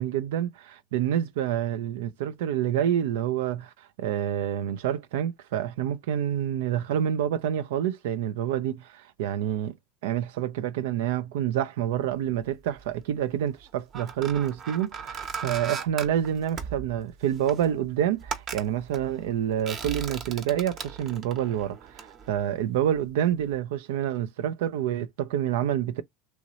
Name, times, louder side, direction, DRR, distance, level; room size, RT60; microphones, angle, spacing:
voice 1, 0.0-9.7 10.0-26.0, right 10 dB, 80° right, 0.4 m, -28 dB
sound 1, 12.4-13.0 13.6-23.1 23.4-23.6, right 6 dB, 45° right, 0.8 m, -38 dB
3.0 x 2.6 x 2.8 m
supercardioid pair, 100°, 0 cm